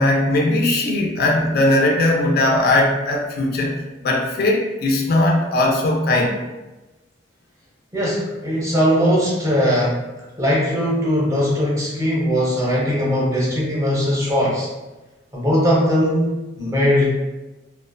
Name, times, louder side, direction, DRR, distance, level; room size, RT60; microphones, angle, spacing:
voice 1, 0.0-6.4, left 1 dB, 55° left, 0 dB, 0.4 m, -19 dB
voice 2, 7.9-10.0 10.4-14.7 15.3-17.1, equal, 15° right, -5 dB, 0.6 m, -19 dB
2.4 x 2.1 x 2.4 m, 1.1 s
head